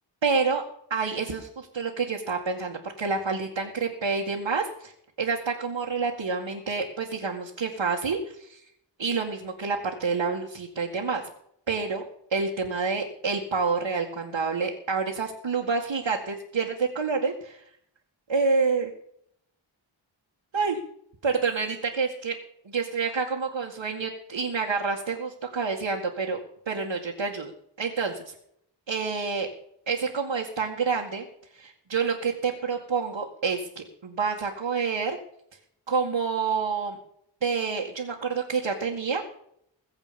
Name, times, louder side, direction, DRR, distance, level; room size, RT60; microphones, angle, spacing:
voice 1, 0.2-0.6 0.9-4.9 5.2-8.6 9.0-11.2 11.7-12.0 12.3-17.6 18.3-18.9 20.5-20.8 21.2-22.4 22.6-26.4 26.7-27.5 27.8-28.3 28.9-29.5 29.9-31.3 31.5-35.2 35.9-37.0 37.4-39.2, right 5 dB, 75° right, -2 dB, 2.1 m, -28 dB
21.5 x 8.1 x 5.3 m, 0.71 s
wide cardioid pair, 80°, 46 cm